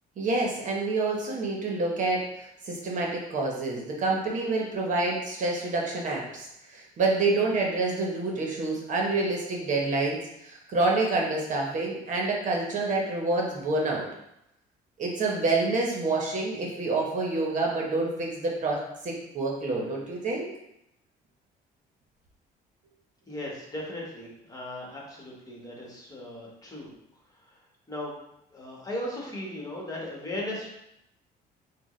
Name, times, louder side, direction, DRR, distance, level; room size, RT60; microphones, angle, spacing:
voice 1, 0.2-14.0 15.0-20.5, right 3 dB, 50° right, -1 dB, 1.0 m, -28 dB
voice 2, 23.3-26.9 27.3-27.6 27.9-28.1 28.5-30.7, left 1 dB, 20° left, -3 dB, 1.3 m, -37 dB
6.1 x 2.2 x 3.1 m, 0.83 s
cardioid pair, 110°, 17 cm